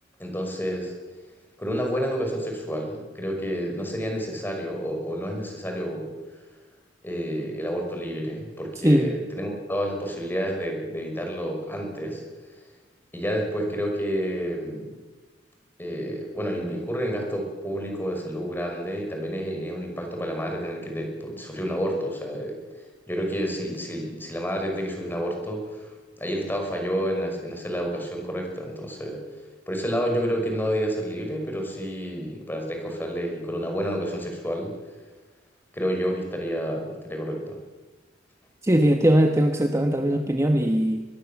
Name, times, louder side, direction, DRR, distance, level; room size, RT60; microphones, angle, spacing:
voice 1, 0.2-0.9 1.6-6.1 7.0-12.2 13.1-14.9 15.8-22.6 23.1-25.9 26.2-29.2 29.7-34.7 35.7-37.6, equal, 10° left, 2 dB, 5.6 m, -29 dB
voice 2, 38.6-41.0, equal, 15° right, 4 dB, 1.2 m, -20 dB
23.5 x 21.5 x 7.2 m, 1.3 s
head